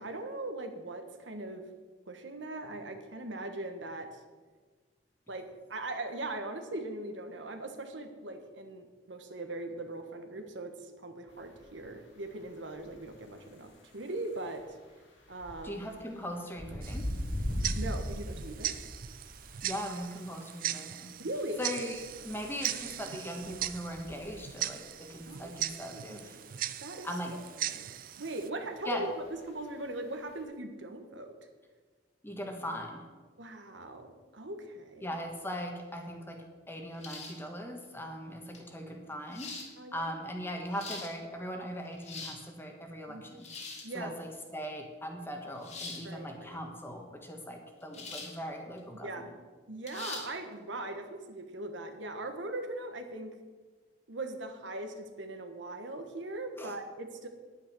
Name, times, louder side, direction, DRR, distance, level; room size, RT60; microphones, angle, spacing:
voice 1, 0.0-1.7 2.1-4.1 5.3-14.6 15.3-15.9 17.8-18.9 21.2-21.6 25.3-25.5 25.8-27.1 27.7-29.1 29.5-31.3 33.4-35.1 39.8-40.1 43.1-43.3 43.8-44.2 46.0-46.6 47.9-48.0 49.0-49.3 49.7-53.4 54.1-57.3, right 2 dB, 80° right, 6 dB, 1.3 m, -40 dB
sound 1, 11.3-30.4, equal, 80° left, 3.0 m, -43 dB
voice 2, 15.6-17.1 19.6-21.1 21.6-26.4 27.0-27.4 28.8-29.1 32.2-33.0 35.0-39.5 39.9-43.5 43.9-49.3 56.6-56.7, equal, 10° left, 3 dB, 1.4 m, -40 dB
Tick-tock, 16.8-28.5, right 13 dB, 50° right, 0.4 m, -39 dB
sound 2, 37.0-37.5 38.5-38.6 39.3-39.7 40.5-41.1 41.9-42.4 43.4-43.9 45.6-46.0 47.9-48.4 48.8-48.9 49.9-50.3, left 4 dB, 40° left, 1.8 m, -42 dB
10.0 x 9.1 x 6.2 m, 1.4 s
head